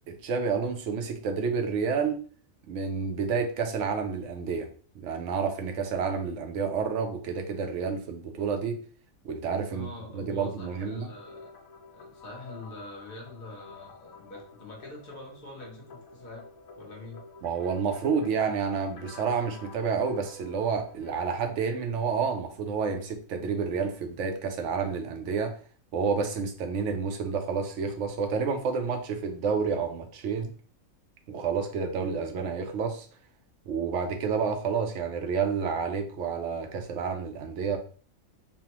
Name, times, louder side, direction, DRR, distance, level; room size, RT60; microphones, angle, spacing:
voice 1, 0.1-2.2 2.7-4.7 4.9-8.8 9.2-9.9 10.1-11.1 17.4-25.6 25.9-30.5 31.3-33.1 33.7-37.8, right 5 dB, 70° right, 5 dB, 0.8 m, -29 dB
voice 2, 9.7-11.5 11.9-16.5 16.8-17.2, left 2 dB, 45° left, -1 dB, 0.9 m, -44 dB
sound 1, 10.6-21.3, left 4 dB, 80° left, 1.0 m, -50 dB
3.3 x 2.1 x 2.9 m, 0.42 s
omnidirectional pair, 1.4 m